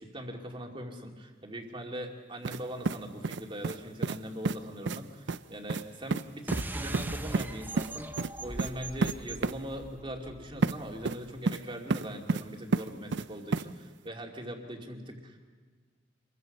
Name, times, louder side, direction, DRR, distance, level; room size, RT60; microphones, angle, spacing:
voice 1, 0.0-15.4, equal, 30° right, 1 dB, 2.6 m, -41 dB
sound 1, 2.5-2.6 2.9-3.8 4.0-4.2 4.5-4.6 4.9-5.0 5.3-5.4 5.7-5.8 6.1-6.2 6.5-6.6 6.9-7.5 7.8-7.9 8.2-8.3 8.6-8.7 9.0-9.1 9.4-9.5 10.6-10.7 11.1-11.6 11.9-12.4 12.7-13.3 13.5-13.7, right 3 dB, 75° right, 0.5 m, -29 dB
sound 2, 6.5-11.4, right 1 dB, 10° right, 0.8 m, -40 dB
26.5 x 22.5 x 5.4 m, 1.5 s
head